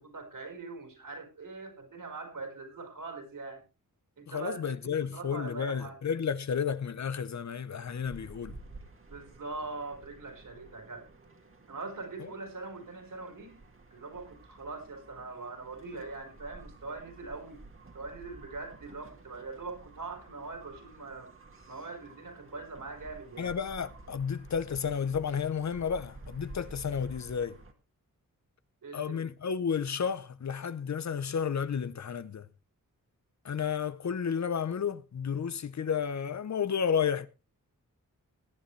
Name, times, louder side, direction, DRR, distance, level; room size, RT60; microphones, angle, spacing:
voice 1, 0.0-3.6 4.2-6.0 9.1-11.1 11.7-13.6 13.9-17.6 17.9-21.3 21.7-23.5 28.8-29.3, right 3 dB, 70° right, 4.6 m, -42 dB
voice 2, 4.3-8.6 12.2-12.3 23.4-27.6 28.9-32.5 33.4-37.3, left 7 dB, 55° left, 0.7 m, -32 dB
sound 1, 7.8-27.7, right 2 dB, 40° right, 2.0 m, -52 dB
17.5 x 11.0 x 3.2 m
wide cardioid pair, 120°, 34 cm